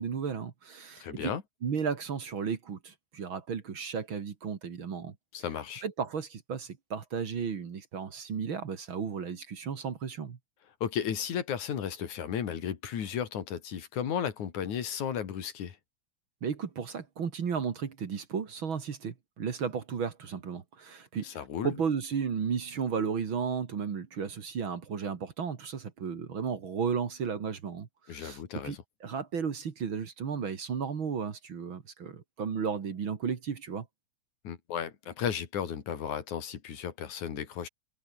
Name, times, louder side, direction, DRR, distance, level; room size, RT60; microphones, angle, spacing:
voice 1, 0.0-1.3 1.6-5.1 5.8-10.4 16.4-33.9, right 6 dB, 45° right, 2.5 m, -34 dB
voice 2, 1.0-1.4 5.3-5.8 10.8-15.8 21.2-21.8 28.1-28.8 34.4-37.7, left 8 dB, 85° left, 3.7 m, -34 dB
omnidirectional pair, 3.3 m